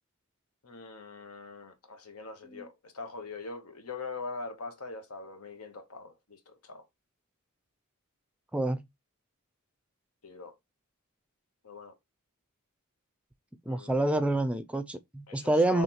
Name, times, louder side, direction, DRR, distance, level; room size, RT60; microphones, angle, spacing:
voice 1, 0.6-6.8 10.2-10.6 11.6-12.0 13.7-14.0 15.3-15.8, left 4 dB, 85° left, 1.0 m, -42 dB
voice 2, 8.5-8.8 13.7-15.8, right 1 dB, 5° right, 0.4 m, -27 dB
5.4 x 3.2 x 2.8 m
head